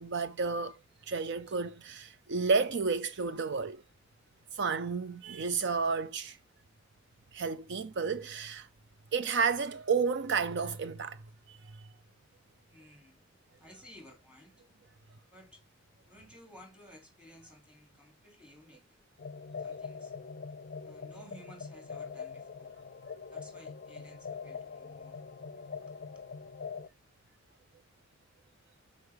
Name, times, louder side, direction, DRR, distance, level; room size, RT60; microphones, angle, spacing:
voice 1, 0.0-0.8 1.1-3.8 4.5-6.4 7.3-8.7 9.1-11.2 11.5-11.6, right 5 dB, 60° right, 0.6 m, -31 dB
voice 2, 12.7-13.2 13.5-14.6 15.3-15.6 16.1-19.0 19.6-20.1 20.8-22.7 23.3-25.2 25.9-26.3, equal, 5° right, 2.9 m, -56 dB
sound 1, 19.2-26.9, left 5 dB, 45° left, 0.5 m, -43 dB
8.1 x 5.6 x 4.9 m
head